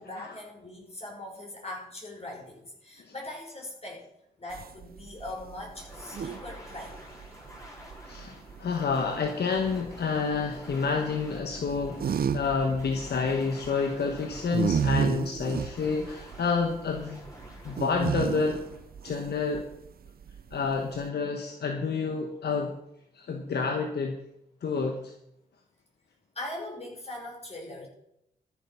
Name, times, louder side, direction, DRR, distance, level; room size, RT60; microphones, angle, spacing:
voice 1, 0.0-4.0 4.4-7.0 26.3-27.9, left 1 dB, 40° left, -1 dB, 5.7 m, -41 dB
sound 1, 4.5-21.1, right 7 dB, 65° right, 0.6 m, -34 dB
sound 2, 5.7-19.6, left 1 dB, 20° left, 5.1 m, -48 dB
voice 2, 8.1-17.2 17.6-18.6 19.0-19.6 20.5-22.7 23.1-24.2 24.6-25.1, left 5 dB, 80° left, 3 dB, 1.3 m, -29 dB
13.5 x 8.0 x 5.9 m, 0.79 s
cardioid pair, 60°, 17 cm